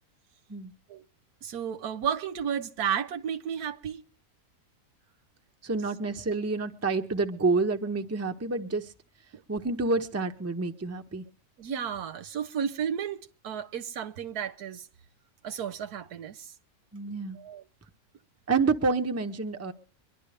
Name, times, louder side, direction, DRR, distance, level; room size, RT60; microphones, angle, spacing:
voice 1, 1.4-4.0 9.3-9.4 11.6-14.9 15.4-16.5 17.4-17.6, right 8 dB, 85° right, 1.4 m, -33 dB
voice 2, 5.6-8.9 9.5-11.2 16.9-17.4 18.5-19.7, right 3 dB, 15° right, 0.6 m, -28 dB
23.5 x 11.0 x 3.3 m
omnidirectional pair, 1.6 m